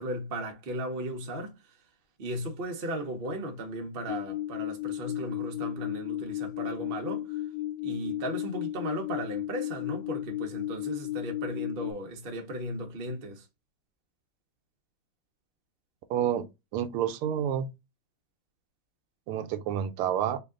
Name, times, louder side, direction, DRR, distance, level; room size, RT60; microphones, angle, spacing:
voice 1, 0.0-1.6 2.2-7.4 7.8-13.4, right 1 dB, 60° right, 0.5 m, -36 dB
sound 1, 4.1-11.9, left 14 dB, 80° left, 0.9 m, -34 dB
voice 2, 16.1-16.5 16.7-17.7 19.3-20.4, right 9 dB, 85° right, 1.5 m, -29 dB
3.5 x 2.5 x 3.6 m
omnidirectional pair, 2.4 m